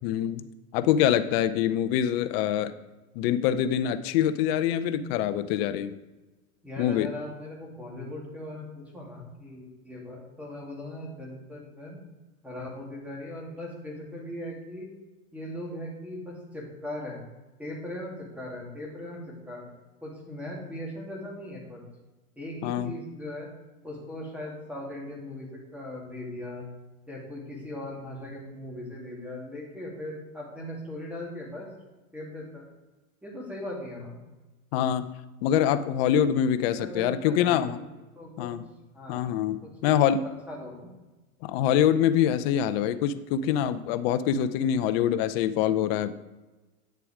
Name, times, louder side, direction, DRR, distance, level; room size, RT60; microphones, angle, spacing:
voice 1, 0.0-0.4 0.7-2.7 3.2-6.0 6.8-7.1 22.6-22.9 34.7-35.1 35.4-37.8 38.4-38.6 39.1-39.6 39.8-40.2 41.4-46.1, left 10 dB, 45° left, 12 dB, 0.7 m, -25 dB
voice 2, 6.6-12.0 12.4-14.9 15.3-17.2 17.6-19.7 20.0-21.8 22.4-23.5 23.8-26.7 27.1-31.7 32.1-32.7 33.2-34.2 36.8-37.9 38.1-38.5 38.9-39.2 39.6-40.0 40.2-40.9, left 1 dB, 5° right, -2 dB, 2.5 m, -39 dB
9.5 x 6.8 x 4.9 m, 1.1 s
hypercardioid pair, 125°, 43 cm